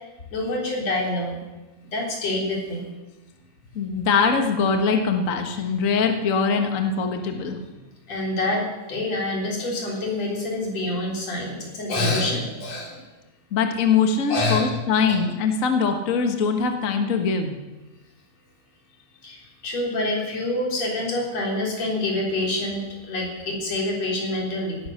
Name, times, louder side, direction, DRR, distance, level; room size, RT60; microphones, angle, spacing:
voice 1, 0.3-1.4 1.9-2.8 8.1-13.0 14.3-14.8 15.1-15.2 19.2-24.8, left 2 dB, 50° left, -1 dB, 4.7 m, -26 dB
voice 2, 3.7-7.6 13.5-17.6, left 5 dB, 75° left, 5 dB, 0.7 m, -22 dB
17.5 x 11.0 x 6.5 m, 1.1 s
omnidirectional pair, 4.0 m